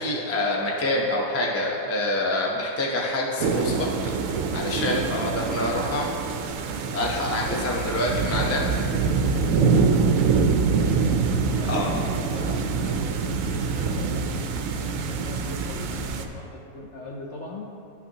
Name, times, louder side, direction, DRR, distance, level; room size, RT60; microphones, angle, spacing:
voice 1, 0.0-6.1 6.9-8.6 11.6-11.9, left 1 dB, 20° left, -2 dB, 0.3 m, -26 dB
sound 1, 3.4-16.3, right 5 dB, 70° right, 0.7 m, -25 dB
voice 2, 8.4-10.5 11.4-17.7, left 2 dB, 65° left, -2 dB, 0.8 m, -39 dB
11.0 x 5.8 x 2.8 m, 2.6 s
omnidirectional pair, 1.8 m